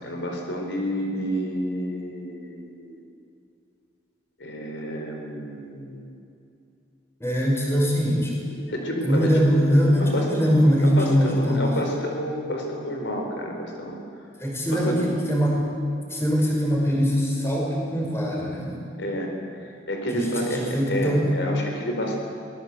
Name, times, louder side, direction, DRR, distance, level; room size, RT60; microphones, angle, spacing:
voice 1, 0.0-3.0 4.4-6.1 8.7-9.3 10.0-10.3 10.8-14.0 14.7-15.0 19.0-19.3 19.9-22.2, equal, 80° left, 2 dB, 4.2 m, -29 dB
voice 2, 7.2-8.3 9.0-11.7 14.4-15.7 16.1-18.8 20.1-21.3, equal, 15° left, -2 dB, 5.6 m, -22 dB
24.5 x 19.5 x 8.3 m, 2.6 s
head